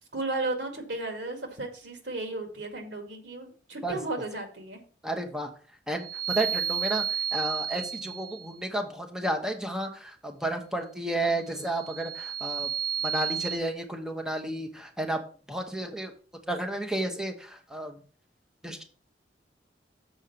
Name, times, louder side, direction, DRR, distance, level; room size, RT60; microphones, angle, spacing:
voice 1, 0.1-4.8, right 2 dB, 85° right, 5 dB, 2.1 m, -34 dB
voice 2, 5.0-5.5 5.9-12.7 13.0-15.2 15.5-16.1 16.5-18.0 18.6-18.8, right 1 dB, 5° right, 3 dB, 1.2 m, -32 dB
sound 1, 5.9-8.5 11.5-13.6, right 9 dB, 20° left, 1.2 m, -32 dB
7.0 x 4.5 x 6.8 m, 0.41 s
head